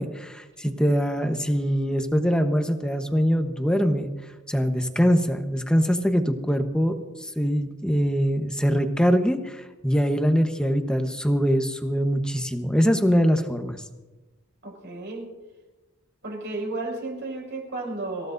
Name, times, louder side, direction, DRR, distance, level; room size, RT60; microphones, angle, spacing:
voice 1, 0.0-4.1 4.5-13.8, equal, 5° left, 6 dB, 1.1 m, -23 dB
voice 2, 14.6-15.3 16.2-18.3, right 2 dB, 55° right, 0 dB, 5.8 m, -33 dB
26.5 x 15.5 x 2.7 m, 1.2 s
head